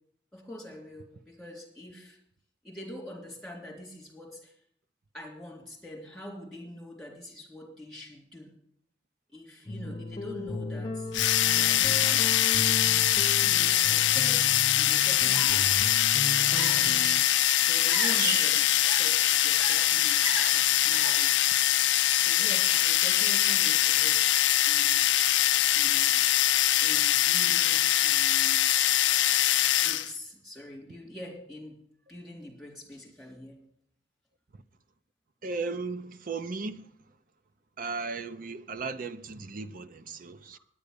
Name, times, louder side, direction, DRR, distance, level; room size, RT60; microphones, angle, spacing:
voice 1, 0.3-2.2 2.6-4.5 5.1-8.5 9.3-11.2 11.4-12.9 13.4-15.8 16.4-17.0 17.6-21.3 22.1-24.2 24.7-25.1 25.8-26.2 26.8-28.6 29.8-31.8 32.1-33.6 40.5-40.6, left 1 dB, ahead, 3.5 m, -45 dB
sound 1, 9.7-17.2, left 2 dB, 25° left, 1.1 m, -36 dB
sound 2, 11.1-30.1, left 13 dB, 70° left, 0.5 m, -23 dB
sound 3, 15.2-21.4, right 3 dB, 75° right, 1.4 m, -37 dB
voice 2, 35.4-36.9 37.8-40.6, right 4 dB, 50° right, 0.6 m, -36 dB
9.6 x 9.2 x 6.8 m
head